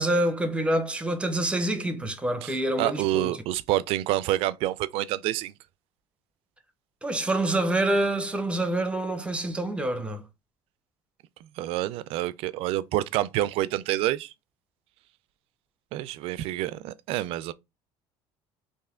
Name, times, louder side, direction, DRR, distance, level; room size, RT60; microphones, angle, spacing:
voice 1, 0.0-3.4 7.0-10.2, right 1 dB, 10° right, 0.7 m, -26 dB
voice 2, 2.4-5.5 11.6-14.3 15.9-17.5, right 15 dB, 65° right, 0.4 m, -28 dB
3.2 x 2.6 x 3.7 m
cardioid pair, 110°, 10 cm